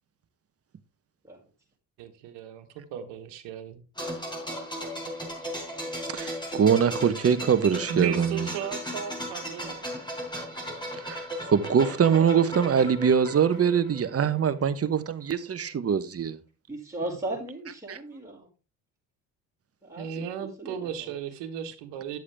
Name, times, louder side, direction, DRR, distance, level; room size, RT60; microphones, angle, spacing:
voice 1, 2.0-3.9 7.9-9.8 20.0-22.2, right 7 dB, 80° right, 1.5 m, -35 dB
sound 1, 4.0-14.6 14.8-15.0, equal, 10° left, 4.7 m, -36 dB
voice 2, 6.1-8.5 11.0-16.4 17.9-18.0, right 7 dB, 35° right, 1.0 m, -23 dB
voice 3, 16.7-18.5 19.8-20.2 20.6-21.1, right 1 dB, 5° right, 5.1 m, -36 dB
10.5 x 7.4 x 3.4 m
supercardioid pair, 65°, 42 cm